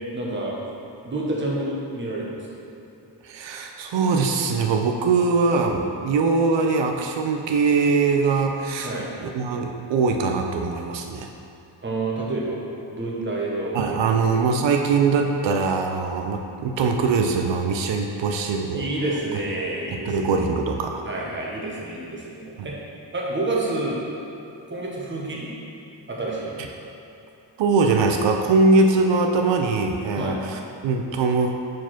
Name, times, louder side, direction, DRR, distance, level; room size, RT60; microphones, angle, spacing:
voice 1, 0.1-0.6 1.0-2.4 8.8-9.1 11.8-12.6 12.9-14.1 18.3-18.4 18.7-20.4 21.1-22.7 23.1-24.0 24.7-25.5 26.1-26.6 30.2-30.4, right 2 dB, 25° right, -4 dB, 1.0 m, -28 dB
voice 2, 3.2-9.0 9.3-11.3 13.7-18.9 19.9-21.0 22.6-22.7 27.6-31.5, right 4 dB, 90° right, 3 dB, 0.6 m, -22 dB
4.7 x 4.6 x 5.8 m, 2.8 s
wide cardioid pair, 160°, 43 cm